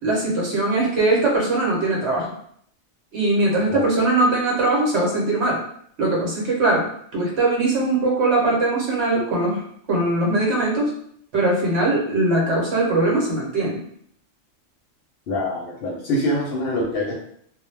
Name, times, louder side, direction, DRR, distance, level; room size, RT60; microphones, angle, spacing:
voice 1, 0.0-2.3 3.1-5.6 6.0-10.9 11.3-13.8, right 2 dB, 70° right, -3 dB, 1.1 m, -21 dB
voice 2, 15.3-17.2, left 1 dB, 65° left, -2 dB, 0.7 m, -24 dB
2.2 x 2.0 x 3.1 m, 0.66 s
omnidirectional pair, 1.2 m